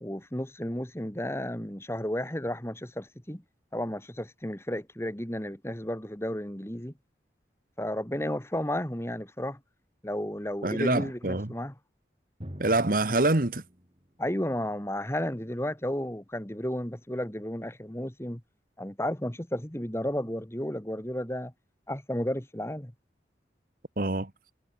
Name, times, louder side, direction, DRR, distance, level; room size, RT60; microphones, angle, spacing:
voice 1, 0.0-3.4 3.7-6.9 7.8-9.6 10.0-11.7 14.2-18.4 18.8-21.5 21.9-22.9, left 1 dB, 15° left, 1.8 m, -33 dB
voice 2, 10.6-11.5 12.6-13.6 24.0-24.3, right 2 dB, 50° right, 1.4 m, -25 dB
Drum, 12.4-15.9, equal, 35° right, 4.8 m, -48 dB
head